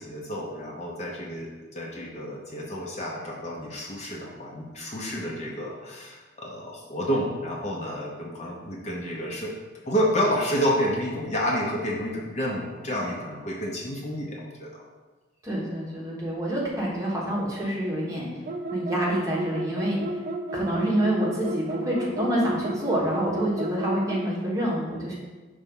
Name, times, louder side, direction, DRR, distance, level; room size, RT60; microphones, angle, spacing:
voice 1, 0.0-9.5 9.9-14.8, equal, 35° left, -2 dB, 0.8 m, -29 dB
voice 2, 15.4-18.3 18.7-20.0 20.5-25.1, right 1 dB, 15° right, -5 dB, 1.2 m, -27 dB
sound 1, 18.5-24.3, right 1 dB, 45° right, 0.5 m, -32 dB
5.6 x 3.4 x 5.4 m, 1.3 s
head